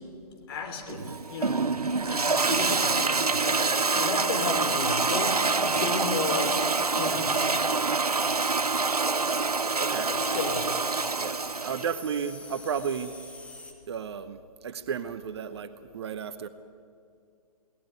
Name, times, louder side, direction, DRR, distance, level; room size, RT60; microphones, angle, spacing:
voice 1, 0.5-1.7 2.0-6.6 7.0-7.6 10.1-10.7, left 4 dB, 40° left, 4 dB, 3.7 m, -34 dB
Toilet flush, 0.9-11.9, right 4 dB, 80° right, 0.9 m, -26 dB
sound 1, 7.0-13.7, left 3 dB, 5° left, 1.9 m, -48 dB
voice 2, 9.8-10.1 11.2-13.2 13.9-16.5, right 7 dB, 45° right, 12 dB, 1.0 m, -33 dB
21.0 x 18.5 x 9.5 m, 2.3 s
figure-of-eight pair, 130°, 19 cm